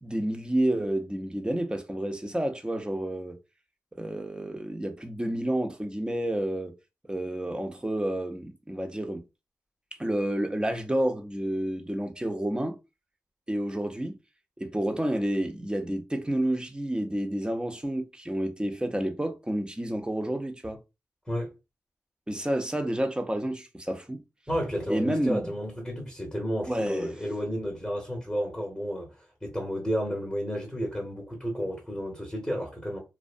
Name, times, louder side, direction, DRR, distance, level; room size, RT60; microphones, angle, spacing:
voice 1, 0.0-3.4 3.9-6.7 7.1-9.2 10.0-12.8 13.5-14.1 14.6-20.8 22.3-24.2 24.9-25.5 26.7-27.1, right 1 dB, 15° right, 0.6 m, -30 dB
voice 2, 24.5-33.0, equal, 5° left, 0.9 m, -32 dB
2.5 x 2.2 x 2.5 m
cardioid pair, 45°, 6 cm